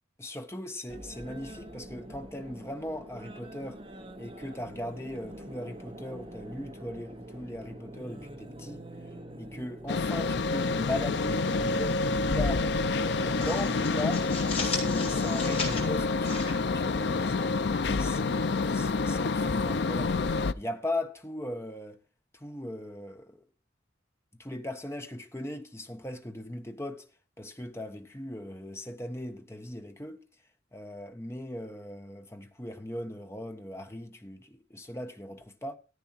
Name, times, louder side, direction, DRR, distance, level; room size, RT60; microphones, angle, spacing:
voice 1, 0.2-3.8 4.2-8.8 9.4-12.8 13.1-14.3 14.6-17.4 17.9-22.0 22.3-23.4 24.4-27.1 27.4-30.2 30.7-35.8, left 1 dB, 15° left, 1.1 m, -38 dB
sound 1, 0.9-13.9, right 1 dB, 30° right, 1.8 m, -45 dB
sound 2, 9.9-20.5, left 3 dB, 60° left, 0.5 m, -28 dB
sound 3, 11.2-12.0 12.3-12.5 12.9-17.4, left 4 dB, 30° left, 5.2 m, -38 dB
14.5 x 8.8 x 4.4 m
head